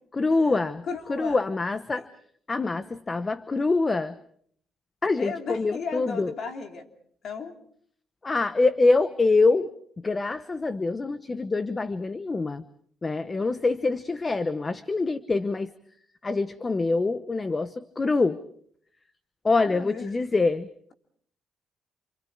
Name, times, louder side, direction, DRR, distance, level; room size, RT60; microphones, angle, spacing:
voice 1, 0.1-0.8 1.1-2.1 2.5-4.2 5.0-6.3 8.2-9.7 10.0-12.6 13.0-15.7 16.2-18.4 19.4-20.9, left 3 dB, 25° left, 14 dB, 1.0 m, -25 dB
voice 2, 0.9-1.4 5.2-6.9 7.2-7.5 19.6-20.1, left 5 dB, 60° left, 5 dB, 3.3 m, -35 dB
29.0 x 27.5 x 4.8 m, 0.62 s
cardioid pair, 90°, 0 cm